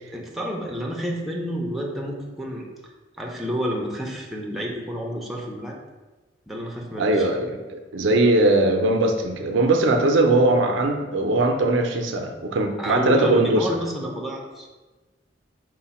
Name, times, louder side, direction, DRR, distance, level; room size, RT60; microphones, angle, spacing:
voice 1, 0.1-2.7 3.2-5.8 6.5-7.3 12.8-14.7, equal, ahead, -2 dB, 0.5 m, -29 dB
voice 2, 7.0-13.8, right 2 dB, 80° right, 4 dB, 0.5 m, -20 dB
4.8 x 2.1 x 4.1 m, 1.2 s
head